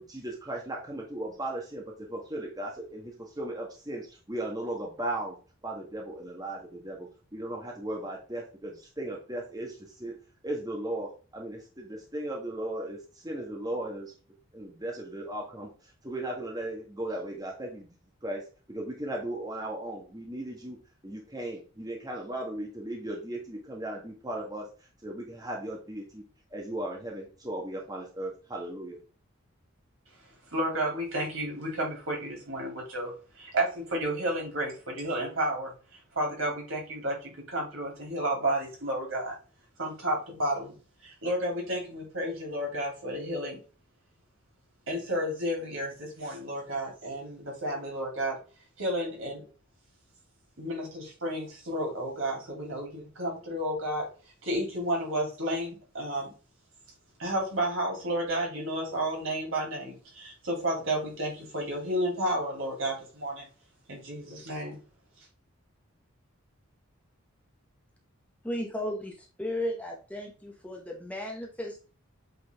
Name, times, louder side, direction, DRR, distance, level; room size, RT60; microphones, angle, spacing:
voice 1, 0.0-5.4 5.6-10.1 10.4-14.1 14.5-17.9 18.2-18.4 18.7-20.8 21.0-24.7 25.0-26.2 26.5-29.0, right 1 dB, 15° right, -1 dB, 1.2 m, -36 dB
voice 2, 30.5-35.7 36.1-39.3 39.8-40.7 41.0-43.6 44.9-48.4 48.8-49.4 50.6-54.1 54.4-56.3 57.2-63.5 63.9-64.8, right 1 dB, 65° right, -1 dB, 3.1 m, -31 dB
voice 3, 68.4-71.9, left 1 dB, 5° left, 0 dB, 1.0 m, -35 dB
8.0 x 3.9 x 3.5 m, 0.36 s
head